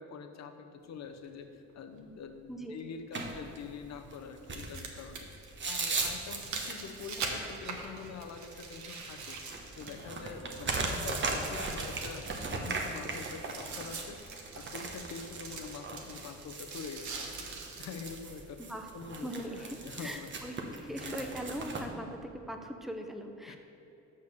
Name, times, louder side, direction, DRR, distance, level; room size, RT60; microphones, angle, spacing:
voice 1, 0.0-14.2 14.5-17.5 17.8-18.6 18.9-20.3 20.9-21.4 23.5-23.6, left 5 dB, 60° left, 6 dB, 0.8 m, -45 dB
sound 1, 1.2-1.3 3.3-3.4 4.5-10.2 10.5-18.2 18.8-18.9, right 4 dB, 70° right, 1.2 m, -43 dB
voice 2, 2.5-2.8 7.4-7.6 18.6-18.9 19.2-20.6 20.8-23.6, equal, ahead, 4 dB, 0.8 m, -40 dB
sound 2, 3.1-21.9, right 3 dB, 40° right, 1.1 m, -39 dB
6.6 x 5.5 x 6.6 m, 3.0 s
cardioid pair, 90°, 30 cm